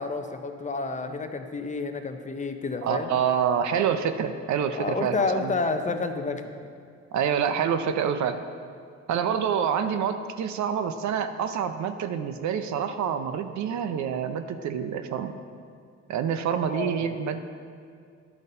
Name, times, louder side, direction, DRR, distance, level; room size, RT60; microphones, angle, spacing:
voice 1, 0.0-3.1 4.7-6.5 16.7-17.2, left 3 dB, 25° left, 6 dB, 0.6 m, -30 dB
voice 2, 2.8-5.5 7.1-8.4 9.1-15.3 16.1-17.4, right 7 dB, 70° right, 9 dB, 0.6 m, -27 dB
11.0 x 4.0 x 5.4 m, 2.3 s
cardioid pair, 90°, 30 cm